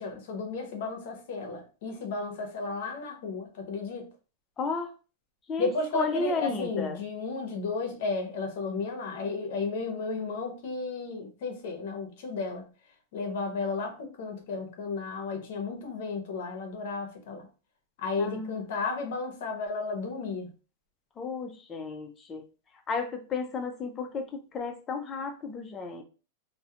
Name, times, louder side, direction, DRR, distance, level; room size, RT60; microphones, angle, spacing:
voice 1, 0.0-4.1 5.6-12.7 13.1-17.5 18.0-20.5, left 4 dB, 50° left, 0.7 m, -33 dB
voice 2, 4.6-4.9 5.5-7.0 18.2-18.7 21.2-22.4 22.9-26.0, left 4 dB, 15° left, 0.3 m, -33 dB
2.4 x 2.0 x 2.8 m
supercardioid pair, 175°, 0 cm